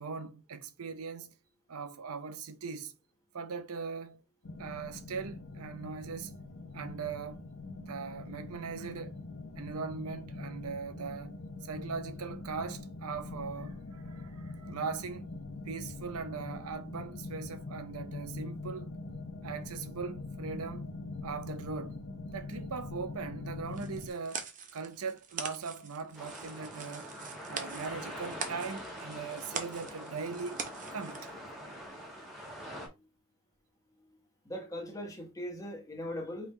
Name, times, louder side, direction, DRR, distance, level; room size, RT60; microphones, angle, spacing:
voice 1, 0.0-1.3 1.7-2.9 3.3-4.2 4.6-6.3 6.7-7.5 7.8-9.2 9.5-15.4 15.7-18.9 19.4-20.9 21.2-22.0 22.3-27.1 27.5-31.3, right 5 dB, 80° right, 0.6 m, -40 dB
sound 1, 4.4-24.1, left 3 dB, 60° left, 0.8 m, -43 dB
sound 2, 23.7-31.3, right 6 dB, 35° right, 0.6 m, -43 dB
sound 3, 26.1-32.9, equal, ahead, 1.5 m, -44 dB
voice 2, 34.4-36.5, left 1 dB, 15° left, 1.0 m, -40 dB
4.9 x 3.4 x 3.2 m
head